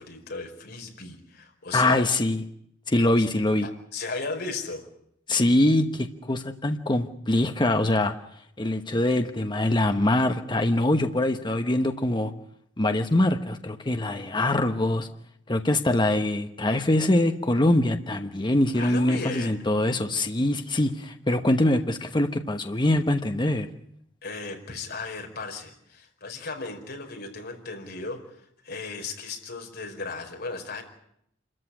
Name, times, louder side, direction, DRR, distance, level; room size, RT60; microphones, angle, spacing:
voice 1, 0.0-2.1 3.2-3.3 3.6-4.8 18.7-19.6 24.2-28.4 28.6-30.8, left 3 dB, 60° left, 3 dB, 4.9 m, -36 dB
voice 2, 1.7-2.4 2.9-3.7 5.3-8.1 8.6-12.3 12.8-15.1 15.5-23.7, left 1 dB, 25° left, 6 dB, 1.1 m, -23 dB
27.5 x 14.0 x 10.0 m, 0.74 s
head